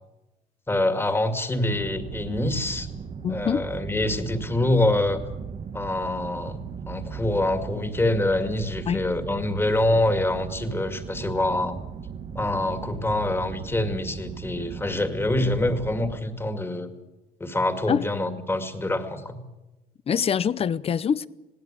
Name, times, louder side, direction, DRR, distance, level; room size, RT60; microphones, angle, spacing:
voice 1, 0.7-2.9 3.3-5.2 5.7-6.6 6.9-11.8 12.4-16.9 17.4-19.4, left 1 dB, 15° left, 2.1 m, -25 dB
sound 1, 1.7-16.2, right 7 dB, 40° right, 1.1 m, -37 dB
voice 2, 3.2-3.7 8.9-9.0 17.9-18.0 20.1-21.3, left 7 dB, 35° left, 0.7 m, -24 dB
20.5 x 17.0 x 8.7 m
cardioid pair, 110°, 17 cm